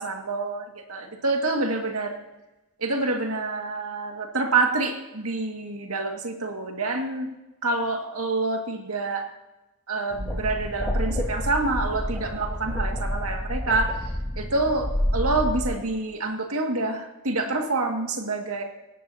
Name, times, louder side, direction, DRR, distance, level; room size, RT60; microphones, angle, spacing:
voice 1, 0.0-2.2 2.8-7.3 7.6-9.2 9.9-14.0 14.4-18.6, right 3 dB, 80° right, 2 dB, 2.1 m, -27 dB
sound 1, 10.1-15.7, equal, 5° left, 4.1 m, -29 dB
18.5 x 17.0 x 2.9 m, 1.0 s
head